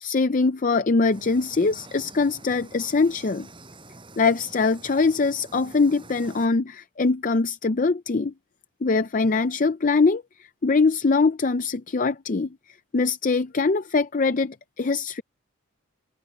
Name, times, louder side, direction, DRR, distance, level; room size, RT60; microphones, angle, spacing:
voice 1, 0.0-3.5 4.2-8.3 8.8-10.2 10.6-12.5 12.9-15.2, left 4 dB, 35° left, 0.5 m, -22 dB
sound 1, 1.1-6.5, right 2 dB, 25° right, 6.9 m, -47 dB
head